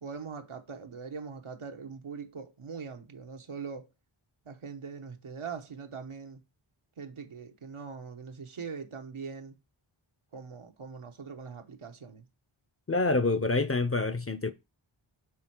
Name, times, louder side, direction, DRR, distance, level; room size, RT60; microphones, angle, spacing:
voice 1, 0.0-3.9 4.4-6.4 7.0-9.5 10.3-12.2, right 5 dB, 80° right, 1.1 m, -42 dB
voice 2, 12.9-14.5, left 3 dB, 30° left, 0.5 m, -27 dB
6.1 x 3.7 x 4.5 m
wide cardioid pair, 45°, 49 cm